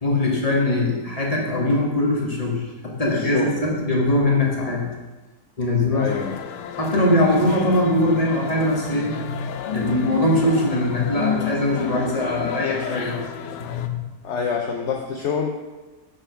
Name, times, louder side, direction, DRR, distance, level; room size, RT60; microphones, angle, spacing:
voice 1, 0.0-4.8 5.6-6.1 6.8-14.0, left 1 dB, 20° left, -2 dB, 1.7 m, -21 dB
voice 2, 3.1-3.8 5.9-6.4 14.2-15.5, left 6 dB, 55° left, 2 dB, 0.8 m, -26 dB
sound 1, 6.1-13.9, left 8 dB, 90° left, 1.3 m, -35 dB
7.5 x 5.2 x 6.2 m, 1.2 s
omnidirectional pair, 1.8 m